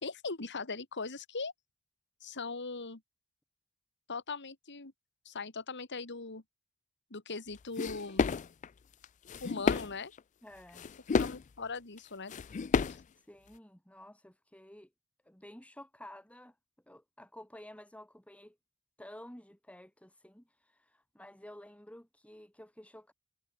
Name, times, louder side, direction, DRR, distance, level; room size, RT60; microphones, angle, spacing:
voice 1, 0.0-1.5 2.2-3.0 4.1-4.9 5.3-6.4 7.1-8.3 9.4-10.1 11.2-12.3 12.8-13.0, left 4 dB, 55° left, 2.4 m, -40 dB
sound 1, 7.8-8.7 9.0-9.9 10.2-10.3 10.8-11.4 12.0-12.1 12.3-13.0, left 5 dB, 35° left, 0.4 m, -30 dB
voice 2, 10.4-10.9 13.1-14.9 15.2-16.6 16.9-18.6 19.0-23.1, left 1 dB, 5° left, 4.0 m, -52 dB
head